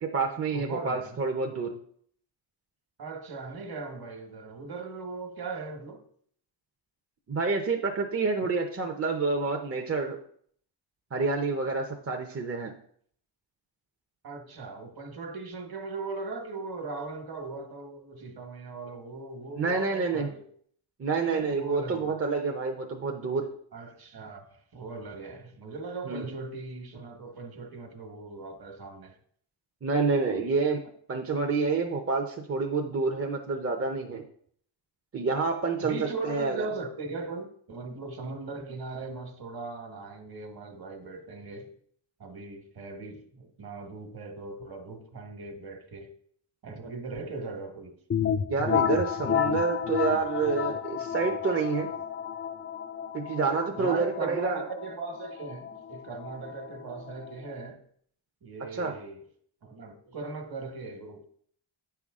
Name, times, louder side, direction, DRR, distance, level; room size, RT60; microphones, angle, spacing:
voice 1, 0.0-1.8 7.3-10.2 11.1-12.7 19.6-20.3 21.0-23.5 26.1-26.3 29.8-30.8 31.1-34.2 35.1-36.6 48.5-51.9 53.1-54.6 58.7-59.0, right 4 dB, 30° right, 0.8 m, -28 dB
voice 2, 0.5-1.2 3.0-6.0 14.2-20.4 21.2-22.1 23.7-29.2 35.8-41.7 42.2-46.1 46.6-48.0 53.7-57.8 58.4-59.2 59.6-61.3, right 3 dB, 50° right, 1.5 m, -39 dB
sound 1, 48.1-57.7, left 8 dB, 30° left, 0.4 m, -31 dB
8.7 x 5.8 x 3.7 m
cardioid pair, 95°, 48 cm